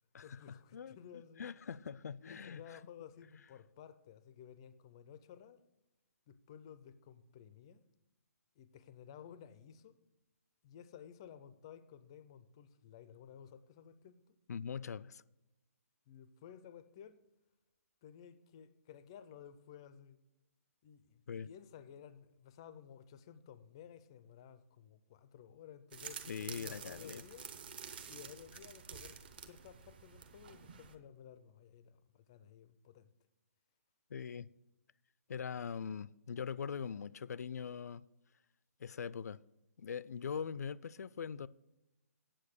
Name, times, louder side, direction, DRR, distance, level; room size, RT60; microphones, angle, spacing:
voice 1, 0.2-1.5 2.2-5.6 6.3-7.8 8.6-10.0 10.6-14.3 16.1-17.2 18.0-20.2 20.8-27.5 28.1-33.1, left 8 dB, 20° left, 0.4 m, -55 dB
voice 2, 1.4-2.8 14.5-15.2 21.3-21.5 26.3-27.2 34.1-34.5 35.3-38.1 38.8-39.4 39.8-41.5, left 6 dB, 85° left, 0.4 m, -42 dB
sound 1, 25.9-30.9, right 7 dB, 35° right, 0.8 m, -49 dB
8.7 x 7.6 x 6.5 m
hypercardioid pair, 175°, 9 cm